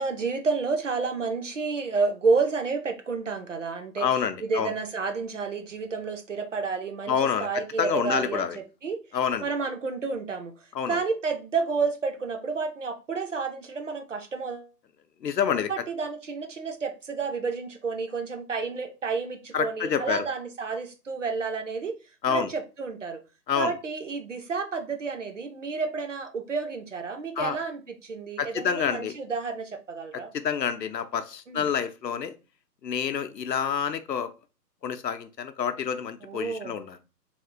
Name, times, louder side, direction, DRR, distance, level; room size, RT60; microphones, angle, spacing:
voice 1, 0.0-4.1 4.4-8.5 8.8-9.0 9.4-10.5 10.9-14.7 15.7-22.0 22.3-23.2 23.6-30.3 31.5-31.6 36.2-36.8, right 4 dB, 50° right, 0.5 m, -30 dB
voice 2, 4.0-4.7 7.1-7.5 7.8-8.6 9.1-9.5 10.7-11.0 15.2-15.7 19.5-20.3 22.2-22.5 23.5-23.7 27.4-27.6 28.4-29.2 30.3-32.3 32.8-34.3 34.8-37.0, left 7 dB, 80° left, 0.6 m, -28 dB
3.4 x 2.4 x 2.5 m
figure-of-eight pair, 140°, 50 cm